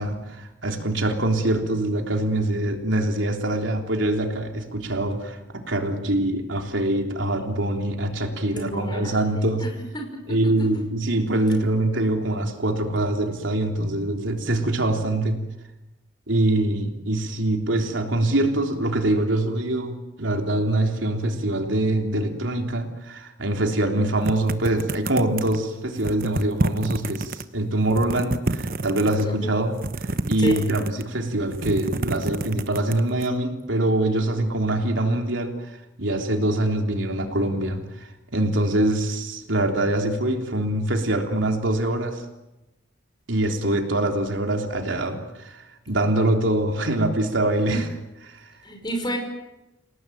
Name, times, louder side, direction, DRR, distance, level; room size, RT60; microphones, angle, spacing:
voice 1, 0.0-9.7 10.3-15.4 16.3-29.8 30.0-42.2 43.3-47.9 48.3-48.5, right 1 dB, 85° right, 3 dB, 3.5 m, -24 dB
voice 2, 8.5-10.7 29.2-29.7 30.4-30.7 47.7-47.8 48.6-49.2, equal, 25° left, 4 dB, 5.6 m, -32 dB
sound 1, 24.2-25.6 26.0-27.4 27.8-29.2 29.7-31.1 31.4-33.3, right 2 dB, 50° right, 1.0 m, -28 dB
29.0 x 18.5 x 9.3 m, 0.98 s
head